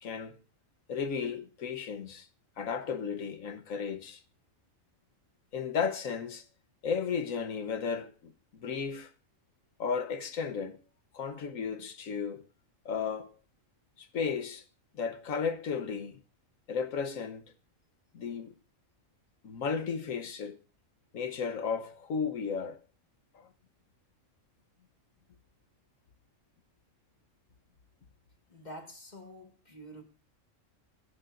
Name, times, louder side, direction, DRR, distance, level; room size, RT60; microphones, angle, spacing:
voice 1, 0.0-0.4 0.9-2.3 2.6-4.2 5.5-6.4 6.8-9.1 9.8-10.8 11.1-12.4 12.8-13.3 14.0-14.6 14.9-16.2 16.7-17.5 18.1-18.5 19.4-20.6 21.1-22.8 23.3-23.5, left 6 dB, 90° left, 1.5 m, -34 dB
voice 2, 28.5-30.0, equal, 35° left, 2.2 m, -47 dB
25.5 x 10.5 x 2.6 m
omnidirectional pair, 1.3 m